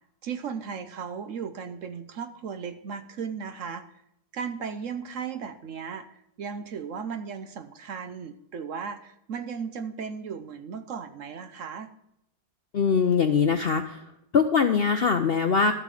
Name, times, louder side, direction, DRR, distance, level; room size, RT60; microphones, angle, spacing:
voice 1, 0.2-3.9 4.3-11.9, right 6 dB, 60° right, 10 dB, 1.0 m, -36 dB
voice 2, 12.7-14.0 14.3-15.7, left 5 dB, 55° left, 8 dB, 0.6 m, -22 dB
12.5 x 7.3 x 4.9 m, 0.80 s
omnidirectional pair, 1.7 m